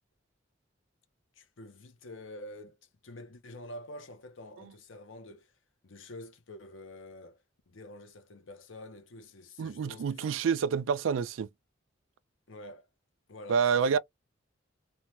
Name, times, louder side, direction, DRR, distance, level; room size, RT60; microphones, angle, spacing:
voice 1, 1.3-5.5 5.8-10.5 12.5-12.9 13.3-14.0, left 1 dB, 80° left, 0.7 m, -47 dB
voice 2, 9.6-11.5 13.5-14.0, right 6 dB, 90° right, 0.4 m, -28 dB
2.7 x 2.2 x 3.1 m
head